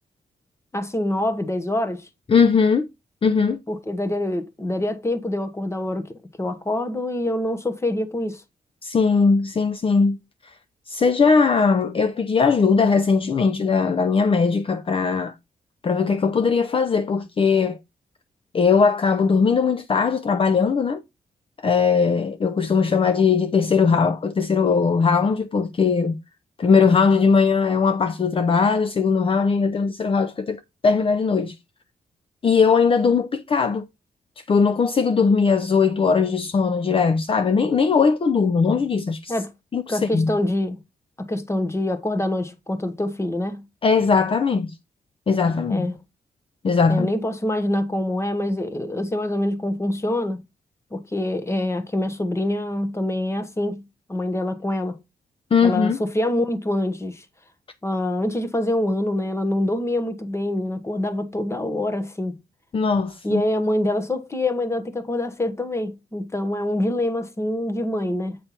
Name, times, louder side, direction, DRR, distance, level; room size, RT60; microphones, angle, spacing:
voice 1, 0.7-2.1 3.7-8.4 39.3-39.5 39.9-40.8 41.2-43.6 45.7-46.0 46.9-50.4 50.9-53.8 54.1-55.0 55.6-57.2 57.8-62.4 63.2-68.4, left 1 dB, 20° left, 1.2 m, -25 dB
voice 2, 2.3-2.9 3.2-3.6 8.8-10.5 10.9-15.3 15.8-17.8 18.5-21.0 21.6-26.2 26.6-31.6 32.4-33.8 34.4-39.4 39.7-40.3 43.8-44.8 45.3-45.9 46.6-47.1 55.5-56.0 62.7-63.4, left 5 dB, 35° left, 0.6 m, -19 dB
8.4 x 3.3 x 5.8 m
cardioid pair, 95°, 15 cm